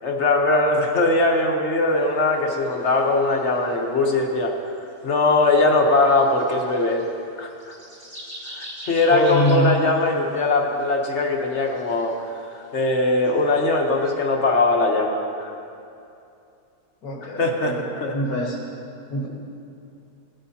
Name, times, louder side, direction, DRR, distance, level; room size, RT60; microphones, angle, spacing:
voice 1, 0.0-4.5 5.0-7.0 7.4-7.7 8.5-15.5 17.2-18.1, left 2 dB, 50° left, 2 dB, 1.3 m, -21 dB
sound 1, 2.3-4.0 4.6-5.0 5.5-7.1 7.5-14.1, right 1 dB, 35° right, 3.5 m, -43 dB
voice 2, 9.1-9.7 17.0-18.6 19.1-19.3, left 2 dB, 90° left, -4 dB, 2.0 m, -24 dB
18.0 x 13.0 x 2.8 m, 2.6 s
omnidirectional pair, 1.6 m